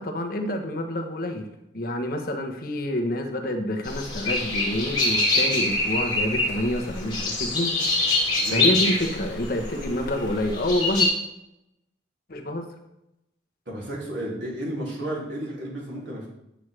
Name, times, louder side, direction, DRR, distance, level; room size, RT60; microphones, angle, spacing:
voice 1, 0.0-1.5 1.7-8.3 8.5-11.1 12.3-12.7, left 1 dB, 55° left, 3 dB, 1.0 m, -28 dB
sound 1, 3.8-11.1, left 2 dB, 25° left, 1.8 m, -25 dB
voice 2, 8.4-8.8 13.7-16.3, right 1 dB, 80° right, -3 dB, 2.6 m, -32 dB
9.0 x 6.2 x 3.3 m, 0.86 s
head